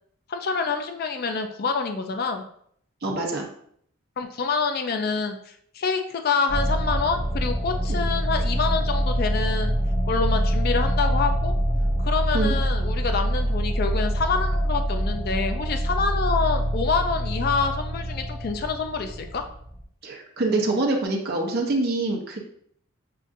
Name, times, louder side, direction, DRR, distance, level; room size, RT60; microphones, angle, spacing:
voice 1, 0.3-2.4 4.2-9.8 10.1-11.5 12.0-19.4, left 5 dB, 45° left, 6 dB, 0.3 m, -27 dB
voice 2, 3.0-3.4 12.3-12.5 20.0-22.4, right 2 dB, 45° right, 0 dB, 0.7 m, -25 dB
sound 1, 6.5-19.8, equal, 20° left, 1.3 m, -25 dB
6.6 x 2.5 x 2.5 m, 0.65 s
head